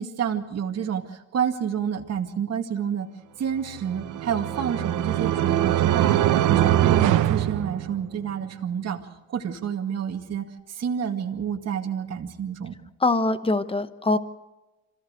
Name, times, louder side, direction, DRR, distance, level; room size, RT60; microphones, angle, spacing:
voice 1, 0.0-3.1 3.4-6.2 6.5-9.0 9.3-12.8, right 8 dB, 55° right, 3 dB, 2.2 m, -29 dB
sound 1, 3.8-8.3, right 12 dB, 80° right, 1.0 m, -22 dB
voice 2, 13.0-14.2, left 2 dB, 20° left, 12 dB, 1.1 m, -23 dB
26.5 x 15.0 x 6.5 m, 1.1 s
cardioid pair, 90°, 30 cm